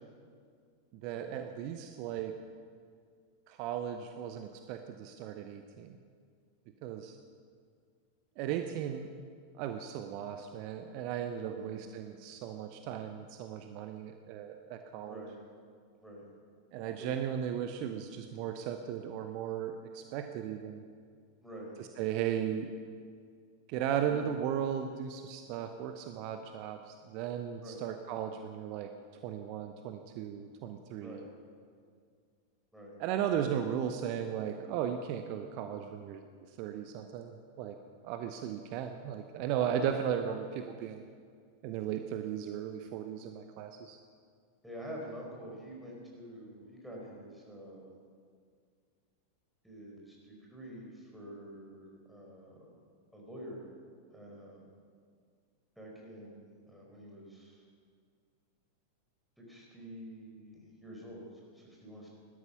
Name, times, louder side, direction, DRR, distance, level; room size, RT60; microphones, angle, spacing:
voice 1, 1.0-2.3 3.5-6.0 6.8-7.1 8.4-9.1 9.5-15.2 16.7-20.8 21.8-22.7 23.7-28.9 29.2-31.3 33.0-36.2 36.6-37.8 38.0-41.1 41.6-44.0, right 9 dB, 45° right, 6 dB, 0.8 m, -36 dB
voice 2, 11.4-11.8 15.0-15.4 16.0-16.2 17.0-17.1 21.4-21.7 24.0-24.3 27.6-27.8 31.0-31.3 32.7-32.9 39.7-40.1 44.6-47.9 49.6-52.7 53.1-53.7 54.1-54.6 55.8-57.6 59.4-61.2 61.5-62.1, right 1 dB, ahead, -3 dB, 5.2 m, -47 dB
18.5 x 12.5 x 5.8 m, 2.1 s
figure-of-eight pair, 90°, 0 cm